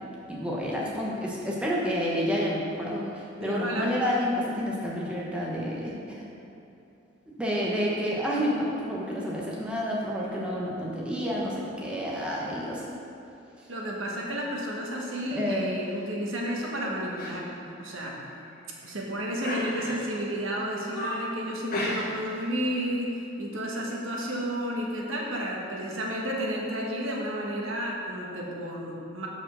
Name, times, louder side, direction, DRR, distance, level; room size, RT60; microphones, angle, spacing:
voice 1, 0.3-6.2 7.3-12.9 15.3-15.7, equal, 5° right, -5 dB, 1.0 m, -29 dB
voice 2, 3.4-3.9 13.7-17.5 17.8-18.2 18.8-29.3, equal, 75° right, -2 dB, 1.3 m, -32 dB
sound 1, 15.0-15.4 15.8-16.1 16.5-16.8 17.2-17.4 17.7-17.8 18.4-18.9 19.4-20.2 20.6-21.3 21.7-22.4 22.6-22.9, left 1 dB, 45° left, 1.9 m, -35 dB
7.0 x 5.1 x 6.2 m, 2.8 s
head